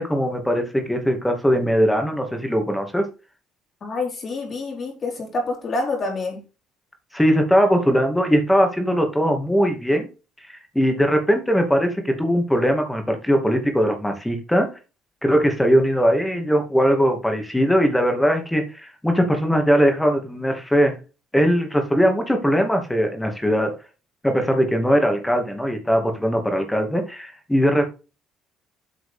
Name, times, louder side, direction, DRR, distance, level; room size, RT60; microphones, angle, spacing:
voice 1, 0.0-3.1 7.1-10.1 10.5-14.8 15.2-21.0 21.3-23.8 24.2-27.9, equal, 5° left, 2.5 m, -20 dB
voice 2, 3.8-6.4, left 3 dB, 35° left, 3.7 m, -27 dB
8.7 x 4.9 x 5.2 m
cardioid pair, 110°, 0 cm